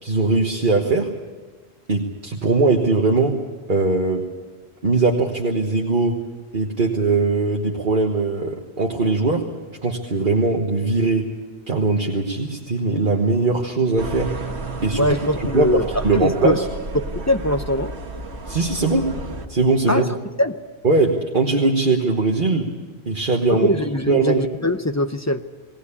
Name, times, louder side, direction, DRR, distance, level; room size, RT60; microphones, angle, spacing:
voice 1, 0.0-1.1 1.9-3.4 3.7-4.2 4.8-6.2 6.5-9.4 9.8-11.3 11.7-14.3 14.8-15.1 15.5-16.7 18.5-19.1 19.5-20.1 20.8-22.7 23.1-23.7 24.1-24.5, right 3 dB, 50° right, 0 dB, 1.6 m, -20 dB
sound 1, 14.0-19.5, right 2 dB, 90° right, 1.8 m, -32 dB
voice 2, 15.0-15.9 16.1-16.6 17.2-17.9 19.9-20.0 20.4-20.6 23.7-25.4, left 1 dB, 20° left, 8 dB, 0.7 m, -21 dB
20.0 x 18.0 x 8.5 m, 1.3 s
omnidirectional pair, 1.1 m